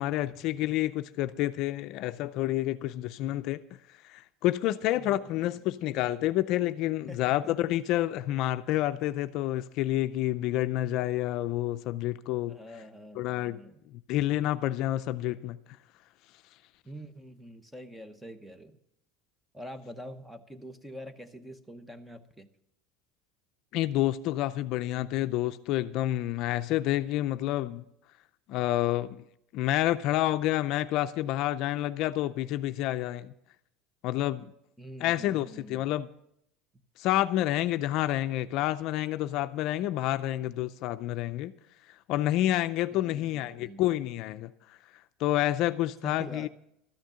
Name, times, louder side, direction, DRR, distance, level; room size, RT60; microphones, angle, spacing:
voice 1, 0.0-3.6 4.0-12.6 13.2-13.6 13.9-15.6 23.7-27.8 28.5-29.2 29.5-33.3 34.0-34.5 35.0-36.1 37.0-41.5 42.1-44.8 45.2-46.5, left 14 dB, 55° left, 0.4 m, -29 dB
voice 2, 4.9-5.5 7.1-7.7 12.5-13.8 16.8-18.8 19.5-22.5 34.8-35.9 42.9-43.9 46.0-46.5, equal, 5° right, 0.9 m, -45 dB
13.0 x 6.5 x 8.6 m
cardioid pair, 140°, 0 cm